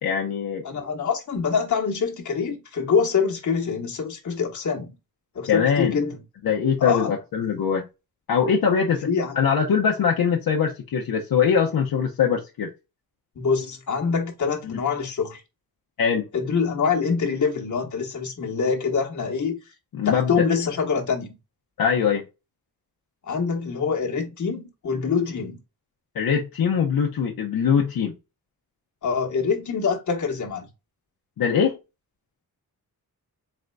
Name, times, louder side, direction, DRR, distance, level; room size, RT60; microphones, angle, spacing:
voice 1, 0.0-0.6 5.5-6.0 6.4-7.8 8.3-9.1 9.4-12.7 14.6-14.8 16.0-16.2 19.9-20.5 21.8-22.2 26.1-28.1 31.4-31.8, left 7 dB, 70° left, 0.7 m, -22 dB
voice 2, 0.6-4.9 5.3-6.2 6.8-7.1 9.1-9.3 13.4-15.4 16.3-19.6 20.0-21.3 23.3-25.6 29.0-30.7, left 5 dB, 55° left, 1.2 m, -25 dB
4.3 x 3.8 x 2.2 m
wide cardioid pair, 140°, 36 cm